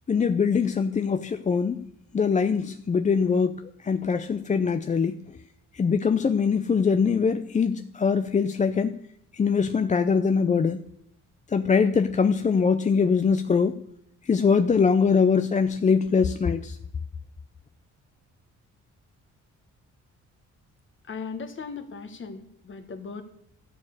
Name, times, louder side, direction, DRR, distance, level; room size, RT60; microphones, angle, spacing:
voice 1, 0.1-1.9 2.1-5.2 5.7-9.0 9.3-10.8 11.5-13.8 14.2-16.8, left 5 dB, 25° left, 9 dB, 0.5 m, -23 dB
voice 2, 21.1-23.2, left 5 dB, 40° left, 8 dB, 1.5 m, -37 dB
12.5 x 4.7 x 8.2 m, 0.73 s
cardioid pair, 90°, 30 cm